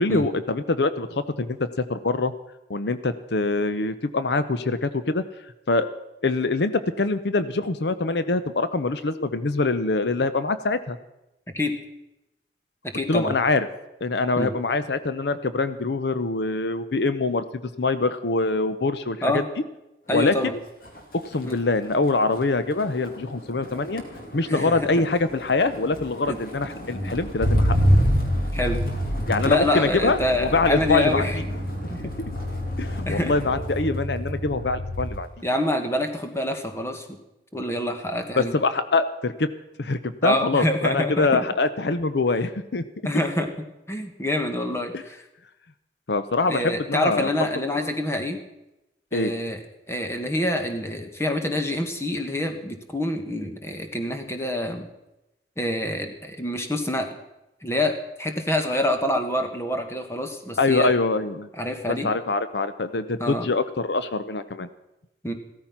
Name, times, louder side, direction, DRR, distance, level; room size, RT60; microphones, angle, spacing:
voice 1, 0.0-2.3 2.7-5.2 5.7-5.9 6.2-11.0 13.1-13.7 14.0-17.4 17.8-19.4 20.1-20.4 21.3-24.0 24.3-27.8 29.3-31.2 32.0-32.1 32.8-35.3 38.4-39.5 39.8-42.8 44.9-45.0 46.1-47.3 47.7-47.9 49.1-49.3 60.6-61.5 61.9-64.7, left 3 dB, 75° left, 13 dB, 0.7 m, -24 dB
voice 2, 12.8-13.4 14.4-14.5 19.2-19.4 20.1-20.5 21.4-21.6 24.5-25.0 26.3-26.4 28.5-28.8 29.4-31.4 31.9-32.1 33.0-33.3 35.4-37.0 37.5-38.6 40.2-41.4 43.0-43.5 43.9-45.2 46.5-48.4 49.1-49.6 49.9-54.9 55.6-57.1 57.6-60.9 61.6-62.1 63.2-63.5 65.2-65.3, left 1 dB, 15° left, 6 dB, 1.5 m, -26 dB
Motor vehicle (road), 20.2-20.5 20.8-35.3 35.7-36.1, equal, 55° left, 2.6 m, -27 dB
16.0 x 13.0 x 5.9 m, 0.93 s
head